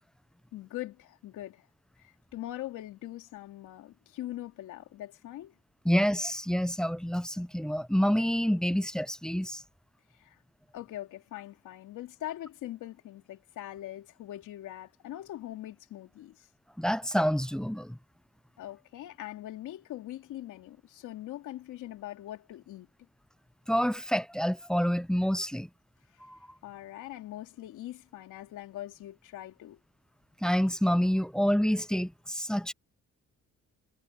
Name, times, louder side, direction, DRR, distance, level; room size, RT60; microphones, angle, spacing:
voice 1, 0.5-1.7 2.0-5.6 10.1-10.4 10.7-16.5 18.6-22.9 26.6-29.8, left 14 dB, 85° left, 2.9 m, -42 dB
voice 2, 5.8-9.6 16.8-18.0 23.7-25.7 26.2-26.4 30.4-32.7, equal, ahead, 0.7 m, -27 dB
cardioid pair, 90°, 30 cm